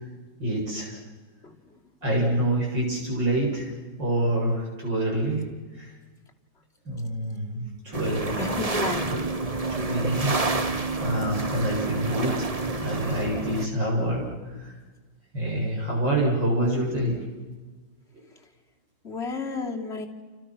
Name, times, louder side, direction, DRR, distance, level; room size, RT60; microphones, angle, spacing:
voice 1, 0.4-1.0 2.0-3.7 4.0-5.4 5.8-5.9 6.8-8.4 9.1-9.2 9.7-12.5 12.8-14.7 15.3-17.1, right 1 dB, 60° right, -1 dB, 8.3 m, -27 dB
sound 1, 7.9-13.7, right 3 dB, 20° right, 1.2 m, -28 dB
voice 2, 8.4-9.1 19.0-20.1, left 3 dB, 30° left, 0 dB, 3.3 m, -31 dB
29.5 x 29.0 x 6.2 m, 1.3 s
omnidirectional pair, 2.2 m